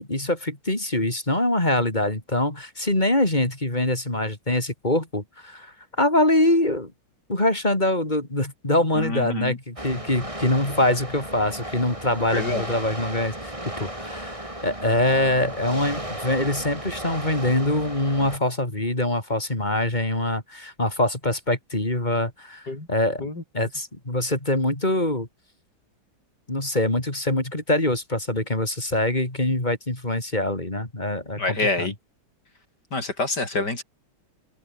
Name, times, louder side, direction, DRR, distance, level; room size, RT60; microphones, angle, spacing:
voice 1, 0.0-5.7 6.0-6.9 7.3-22.6 22.9-23.3 23.5-25.3 26.5-31.9, left 1 dB, 20° left, 4.4 m, -24 dB
voice 2, 9.0-9.6 12.3-12.6 22.7-22.9 23.2-23.4 31.4-31.9 32.9-33.8, left 2 dB, 55° left, 7.4 m, -27 dB
sound 1, 9.8-18.4, right 1 dB, 15° right, 5.9 m, -35 dB
omnidirectional pair, 2.1 m